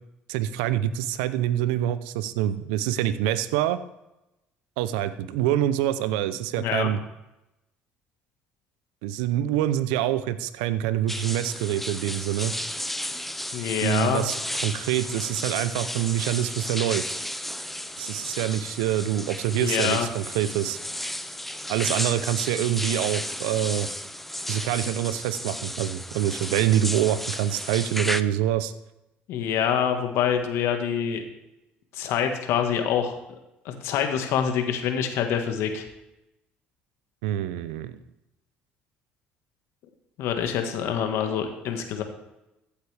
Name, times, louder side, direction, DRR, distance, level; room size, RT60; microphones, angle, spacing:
voice 1, 0.3-3.8 4.8-7.0 9.0-12.5 13.8-17.1 18.0-20.8 21.7-23.9 24.5-28.7 37.2-38.0, right 12 dB, 80° right, 14 dB, 0.6 m, -26 dB
voice 2, 6.6-6.9 13.5-14.2 19.5-20.1 29.3-31.2 31.9-33.1 33.6-35.9 40.2-42.0, left 8 dB, 70° left, 6 dB, 1.6 m, -26 dB
sound 1, 11.1-28.2, left 1 dB, 5° left, 0.6 m, -33 dB
15.0 x 8.2 x 3.4 m, 0.92 s
hypercardioid pair, 65°, 5 cm